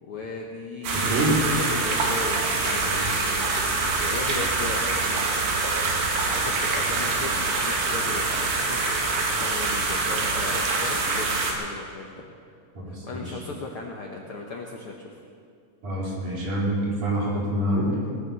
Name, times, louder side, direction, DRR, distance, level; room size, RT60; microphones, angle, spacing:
voice 1, 0.0-3.5 4.0-5.1 6.2-8.8 9.4-12.2 12.9-15.2, left 3 dB, 60° left, 0 dB, 1.4 m, -37 dB
sound 1, 0.8-11.5, right 3 dB, 90° right, 3.7 m, -25 dB
voice 2, 0.9-1.4 2.8-3.1 12.8-13.4 15.8-18.2, right 1 dB, 60° right, -6 dB, 5.5 m, -26 dB
20.0 x 9.5 x 6.9 m, 2.3 s
omnidirectional pair, 3.9 m